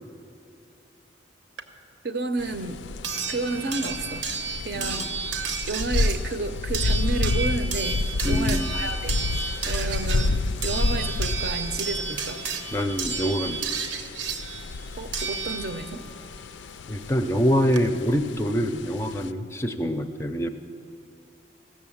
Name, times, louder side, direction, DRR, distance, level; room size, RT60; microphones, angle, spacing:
sound 1, 1.6-1.7 3.0-16.0 17.3-17.4 17.7-17.8, right 5 dB, 90° right, 0.9 m, -32 dB
voice 1, 2.0-2.8 3.3-4.2 4.6-5.1 5.7-9.2 9.7-12.4 15.0-16.0, right 3 dB, 60° right, 9 dB, 0.6 m, -31 dB
sound 2, 2.4-19.3, left 3 dB, 85° left, 0.4 m, -30 dB
voice 2, 8.2-8.7 12.7-13.6 16.9-20.5, equal, 15° left, 7 dB, 0.4 m, -25 dB
15.5 x 6.8 x 7.2 m, 2.7 s
head